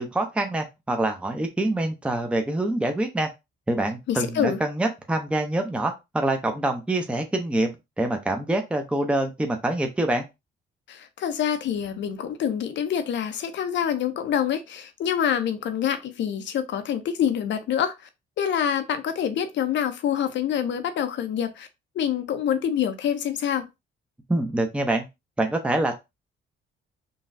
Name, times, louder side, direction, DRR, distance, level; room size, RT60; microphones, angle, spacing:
voice 1, 0.0-3.3 3.7-7.7 8.0-10.3 24.3-25.1 25.4-25.9, right 1 dB, 5° right, 0.6 m, -25 dB
voice 2, 4.1-4.6 10.9-18.1 18.4-21.7 21.9-23.7, left 9 dB, 65° left, 0.7 m, -26 dB
3.9 x 2.3 x 2.6 m
cardioid pair, 90°, 20 cm